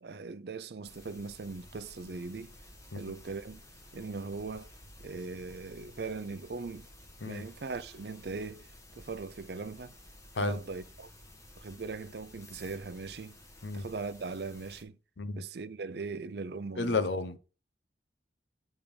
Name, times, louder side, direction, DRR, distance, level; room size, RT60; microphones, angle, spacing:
voice 1, 0.0-2.5 2.9-3.6 3.9-4.7 5.0-6.9 7.3-8.7 9.0-9.9 10.4-11.1 11.6-13.4 13.7-15.0 15.3-17.0, right 4 dB, 65° right, 0.5 m, -40 dB
sound 1, 0.8-14.8, left 1 dB, 20° left, 1.3 m, -54 dB
voice 2, 16.8-17.4, left 3 dB, 85° left, 0.8 m, -31 dB
8.8 x 3.6 x 5.2 m
head